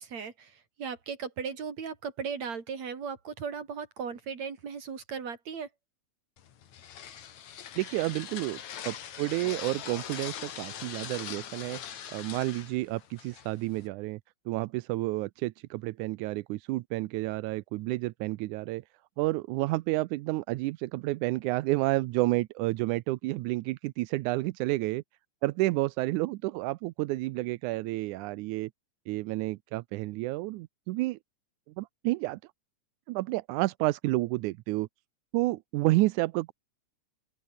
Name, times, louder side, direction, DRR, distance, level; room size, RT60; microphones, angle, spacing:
voice 1, 0.0-5.7, right 6 dB, 65° right, 4.7 m, -37 dB
sound 1, 6.4-13.9, left 9 dB, 70° left, 3.2 m, -42 dB
voice 2, 7.8-8.6 8.9-11.8 12.1-14.2 14.5-18.8 19.2-25.0 25.4-28.7 29.1-31.2 31.8-32.4 33.1-34.9 35.3-36.5, right 19 dB, 90° right, 2.1 m, -30 dB
open air
omnidirectional pair, 3.4 m